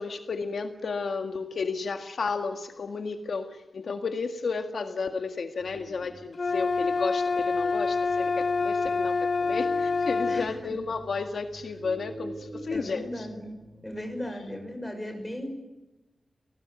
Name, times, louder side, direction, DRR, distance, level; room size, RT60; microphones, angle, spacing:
voice 1, 0.0-13.3, left 4 dB, 65° left, 6 dB, 1.8 m, -33 dB
sound 1, 5.6-14.3, right 1 dB, 35° right, 5.5 m, -46 dB
sound 2, 6.3-10.5, left 4 dB, 45° left, 0.8 m, -26 dB
voice 2, 10.3-10.7 12.7-13.6 13.8-15.5, left 1 dB, 10° left, 5 dB, 6.2 m, -36 dB
29.0 x 18.5 x 9.4 m, 1.1 s
wide cardioid pair, 150°, 0 cm